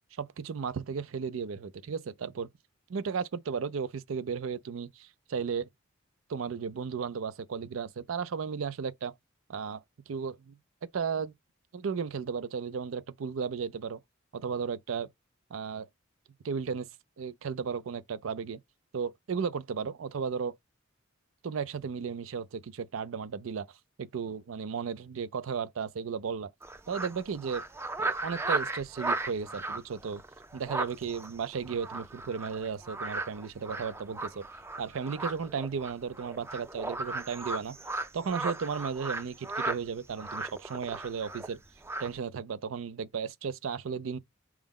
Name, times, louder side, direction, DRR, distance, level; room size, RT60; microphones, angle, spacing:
voice 1, 0.2-2.5 2.9-5.7 6.3-9.1 9.5-10.6 10.9-11.3 11.7-14.0 14.3-15.1 15.5-15.9 16.4-16.9 17.2-18.6 18.9-20.5 21.4-23.7 24.0-26.5 26.9-27.6 28.0-30.2 30.5-34.4 34.8-37.8 38.1-41.6 42.0-44.2, right 6 dB, 90° right, 0.5 m, -34 dB
sound 1, 26.6-39.8 40.2-41.6 41.8-42.2, right 2 dB, 15° right, 0.4 m, -36 dB
4.6 x 2.1 x 3.6 m
head